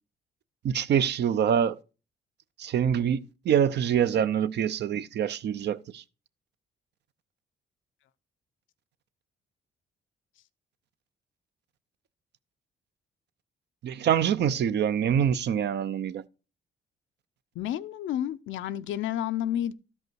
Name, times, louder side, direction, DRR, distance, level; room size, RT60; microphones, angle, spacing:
voice 1, 0.6-1.8 2.6-6.0 13.8-16.2, right 8 dB, 60° right, 0.6 m, -25 dB
voice 2, 17.6-19.7, left 11 dB, 75° left, 0.6 m, -30 dB
12.5 x 5.3 x 4.7 m
cardioid pair, 90°, 20 cm